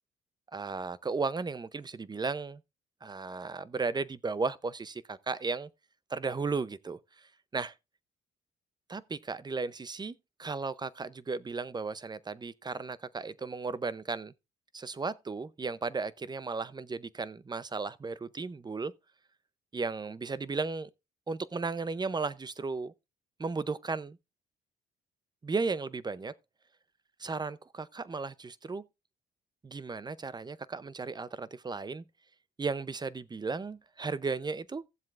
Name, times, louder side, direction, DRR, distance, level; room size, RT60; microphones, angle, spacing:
voice 1, 0.5-2.6 3.0-5.7 6.1-7.7 8.9-14.3 14.7-18.9 19.7-20.9 21.3-22.9 23.4-24.2 25.4-26.3 27.2-28.8 29.6-32.0 32.6-34.8, right 4 dB, 20° right, 0.6 m, -35 dB
16.0 x 7.5 x 2.5 m
cardioid pair, 90°, 20 cm